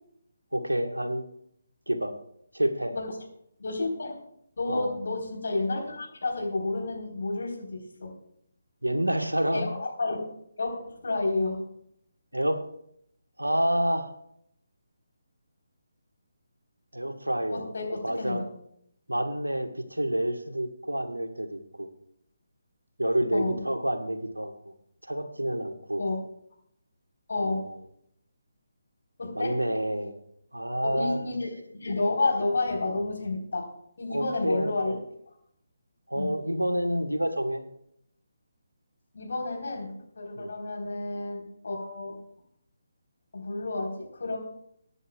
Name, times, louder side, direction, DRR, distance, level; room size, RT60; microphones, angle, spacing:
voice 1, 0.5-1.2 1.9-2.1 2.5-2.9 4.7-5.0 8.8-9.7 12.3-12.6 13.4-14.1 16.9-18.4 19.1-21.9 23.0-24.7 25.0-26.0 27.4-27.8 29.3-30.1 30.5-31.3 34.1-35.0 36.1-37.6 40.4-40.5, right 1 dB, 85° right, 6 dB, 1.4 m, -28 dB
voice 2, 3.6-4.1 4.6-8.1 9.5-10.2 10.6-11.7 17.5-18.5 23.3-23.6 26.0-26.2 27.3-27.7 29.2-29.6 30.8-31.5 31.7-33.7 34.0-34.9 36.1-36.4 39.1-42.2 43.3-44.4, left 2 dB, 60° left, 1 dB, 4.0 m, -30 dB
22.5 x 10.0 x 2.4 m, 0.72 s
figure-of-eight pair, 145°, 0 cm